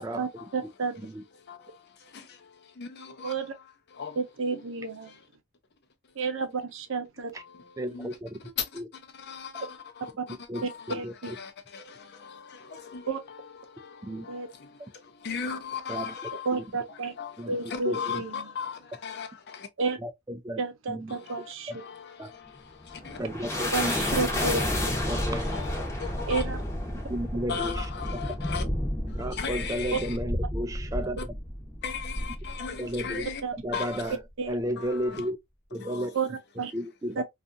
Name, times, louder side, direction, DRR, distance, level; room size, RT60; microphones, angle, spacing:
voice 1, 0.2-1.0 3.2-3.5 4.2-5.1 6.2-7.3 10.2-10.3 10.6-11.3 13.1-13.2 14.3-14.5 16.5-17.1 17.5-18.5 19.8-20.0 20.6-21.7 23.7-24.6 26.3-26.6 29.9-30.0 33.4-33.5 34.4-34.5 36.1-36.7 37.2-37.3, right 4 dB, 65° right, 0.6 m, -31 dB
voice 2, 1.4-4.2 4.5-4.6 5.0-5.3 7.4-10.9 11.2-16.5 16.9-19.7 21.1-23.3 25.0-26.4 27.5-28.7 29.1-30.2 31.2-31.3 31.8-33.4 33.7-34.2 34.8-35.3 35.7-36.2, left 6 dB, 55° left, 0.6 m, -39 dB
voice 3, 7.8-8.3 10.5-10.6 10.9-11.1 14.1-14.2 15.9-16.0 17.4-17.5 17.9-18.0 20.0-20.1 20.4-20.6 20.9-21.1 22.2-22.3 23.2-23.9 25.1-25.5 27.1-27.7 29.1-31.2 32.8-33.2 33.6-34.1 34.5-35.4 35.7-36.1 36.7-37.2, equal, 15° right, 0.3 m, -32 dB
sound 1, 22.6-33.4, left 1 dB, 15° left, 0.8 m, -31 dB
2.7 x 2.4 x 2.4 m
head